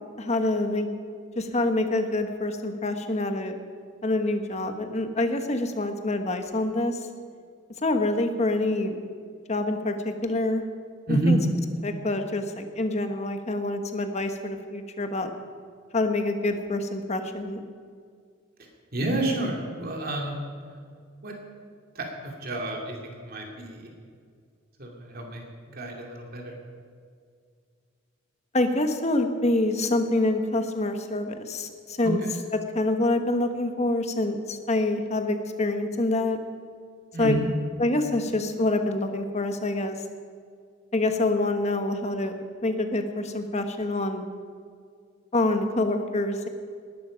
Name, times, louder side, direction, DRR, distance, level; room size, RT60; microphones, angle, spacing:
voice 1, 0.2-0.9 1.4-3.6 4.0-7.0 7.8-9.0 9.5-10.6 11.1-11.4 11.8-15.3 15.9-17.6 28.5-32.2 32.7-36.4 37.2-37.4 37.8-40.0 40.9-42.3 42.6-44.2 45.3-46.5, left 2 dB, 35° left, 7 dB, 1.2 m, -26 dB
voice 2, 18.6-20.4 21.2-21.3 21.9-23.9 24.8-25.4 25.7-26.5 32.0-32.3 37.1-37.5, right 2 dB, 45° right, 1 dB, 2.6 m, -29 dB
19.5 x 12.0 x 5.2 m, 2.1 s
head